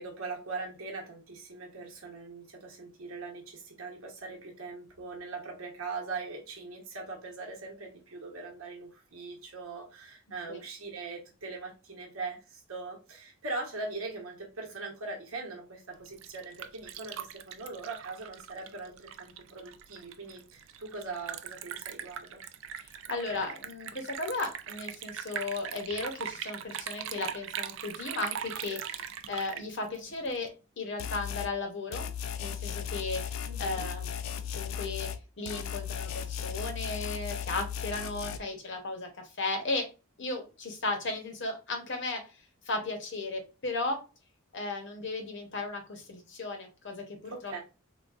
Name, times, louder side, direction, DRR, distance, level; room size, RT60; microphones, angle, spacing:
voice 1, 0.0-22.4 33.5-33.9 47.3-47.6, right 3 dB, 85° right, 1 dB, 1.0 m, -41 dB
Liquid, 15.9-30.5, right 9 dB, 65° right, 0.3 m, -41 dB
voice 2, 23.1-30.5 30.8-32.1 32.4-35.1 35.4-39.9 40.2-42.4 42.6-44.0 44.5-47.6, left 3 dB, 60° left, 4 dB, 0.8 m, -35 dB
sound 1, 31.0-31.5 31.9-35.2 35.5-38.4, left 8 dB, 75° left, 0.3 m, -36 dB
3.8 x 2.2 x 2.4 m, 0.31 s
head